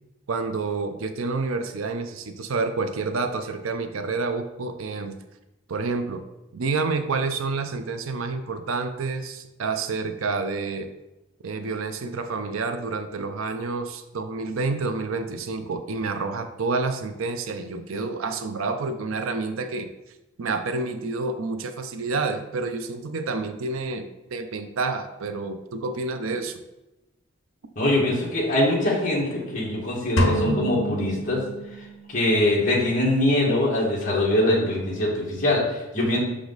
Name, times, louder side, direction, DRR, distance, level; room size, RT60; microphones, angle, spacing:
voice 1, 0.3-5.1 5.7-6.2 6.5-10.9 11.4-19.9 20.4-26.6, right 3 dB, 85° right, 8 dB, 0.6 m, -29 dB
voice 2, 27.7-31.4 32.1-36.2, left 1 dB, 40° left, -4 dB, 1.7 m, -23 dB
sound 1, 30.2-32.2, equal, 65° left, 1.0 m, -26 dB
6.2 x 5.0 x 3.9 m, 0.97 s
head